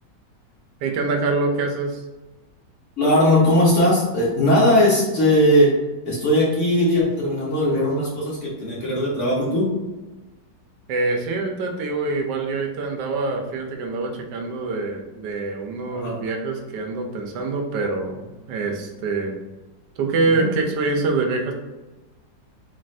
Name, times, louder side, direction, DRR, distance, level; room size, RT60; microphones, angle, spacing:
voice 1, 0.8-2.0 10.9-19.3 20.0-21.5, right 3 dB, 70° right, 2 dB, 1.2 m, -25 dB
voice 2, 3.0-5.7 6.0-9.7 15.9-16.2 20.2-20.5, left 1 dB, 50° left, -6 dB, 1.2 m, -19 dB
4.0 x 2.5 x 3.2 m, 1.1 s
omnidirectional pair, 2.0 m